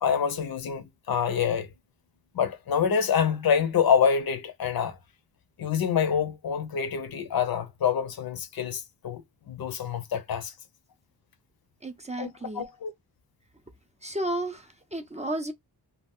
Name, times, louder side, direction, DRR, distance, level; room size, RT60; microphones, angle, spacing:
voice 1, 0.0-1.7 2.3-5.0 5.6-9.2 9.5-10.5 12.2-12.9, left 7 dB, 60° left, 0.6 m, -26 dB
voice 2, 11.8-12.7 14.0-14.7 14.9-15.5, right 1 dB, 15° right, 0.5 m, -32 dB
2.3 x 2.1 x 3.5 m
cardioid pair, 70°, 41 cm